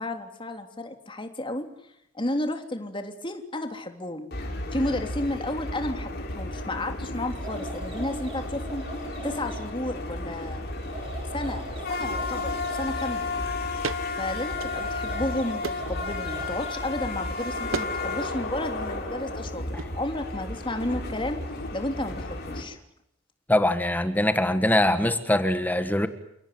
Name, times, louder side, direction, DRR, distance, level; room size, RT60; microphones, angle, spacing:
voice 1, 0.0-1.7 2.1-4.3 4.7-8.9 9.2-10.6 11.3-13.3 14.2-19.6 19.9-21.4 21.7-22.8, left 1 dB, 25° left, 6 dB, 3.2 m, -32 dB
sound 1, 4.3-22.6, left 2 dB, 55° left, 6.2 m, -33 dB
sound 2, 7.2-9.7 10.7-13.2 14.4-16.9, right 3 dB, 30° right, 7.9 m, -42 dB
sound 3, 13.8-14.0 14.5-15.2 15.6-16.0 17.7-18.0 18.2-18.7 19.8-19.9, right 4 dB, 85° right, 1.1 m, -34 dB
voice 2, 23.5-26.1, left 1 dB, 10° left, 9 dB, 1.5 m, -22 dB
30.0 x 18.0 x 9.4 m, 0.78 s
head